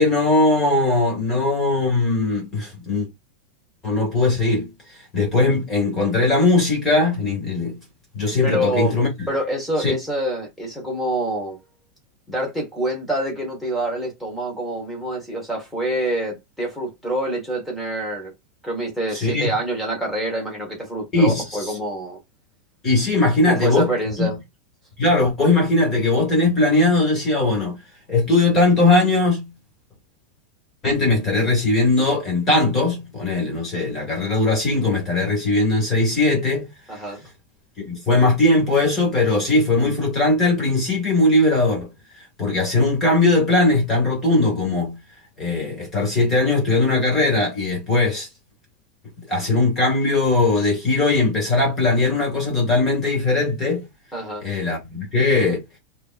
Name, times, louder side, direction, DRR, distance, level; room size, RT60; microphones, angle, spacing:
voice 1, 0.0-3.1 3.8-4.7 5.1-7.7 8.1-9.3 9.8-9.9 19.1-19.5 21.1-21.4 22.8-23.9 24.2-24.3 25.0-27.7 28.1-29.5 30.8-36.7 37.8-41.9 42.4-45.0 45.4-48.3 49.3-53.8 54.4-55.6, left 2 dB, 15° left, 2.0 m, -19 dB
voice 2, 8.4-9.0 9.3-11.6 12.3-18.3 18.6-22.2 23.4-24.4 36.9-37.2 54.1-54.4, right 1 dB, ahead, 1.4 m, -26 dB
5.0 x 2.8 x 2.5 m
supercardioid pair, 175°, 0 cm